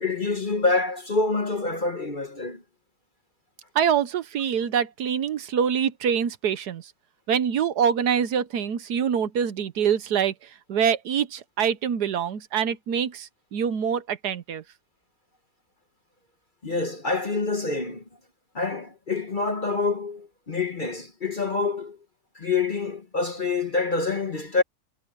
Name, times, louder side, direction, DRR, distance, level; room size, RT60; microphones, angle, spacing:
voice 1, 0.0-2.6 16.6-18.0 18.5-22.0 22.3-24.6, left 3 dB, 35° left, 1.1 m, -26 dB
voice 2, 3.7-6.9 7.3-14.6, right 8 dB, 70° right, 1.4 m, -25 dB
omnidirectional pair, 1.8 m